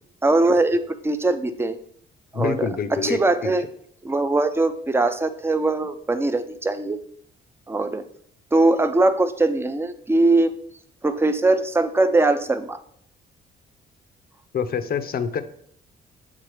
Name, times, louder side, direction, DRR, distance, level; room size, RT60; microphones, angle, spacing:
voice 1, 0.2-1.8 2.3-3.7 4.0-7.0 7.7-8.1 8.5-10.5 11.0-12.8, right 2 dB, 10° right, 9 dB, 0.5 m, -21 dB
voice 2, 2.3-3.5 14.5-15.4, left 6 dB, 50° left, 10 dB, 0.6 m, -26 dB
7.7 x 3.7 x 3.2 m, 0.66 s
cardioid pair, 90°, 20 cm